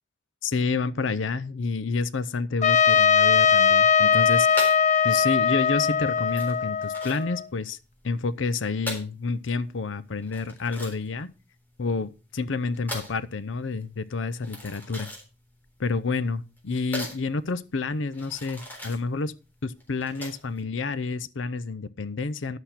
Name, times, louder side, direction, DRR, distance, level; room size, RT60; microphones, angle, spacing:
voice 1, 0.4-4.7 5.0-7.8 8.0-11.3 11.8-15.1 15.8-19.3 19.6-22.6, left 4 dB, 80° left, 0.7 m, -29 dB
Trumpet, 2.6-7.4, left 6 dB, 40° left, 0.6 m, -20 dB
sound 1, 4.5-20.6, left 1 dB, 10° left, 3.8 m, -40 dB
11.5 x 8.0 x 4.3 m
head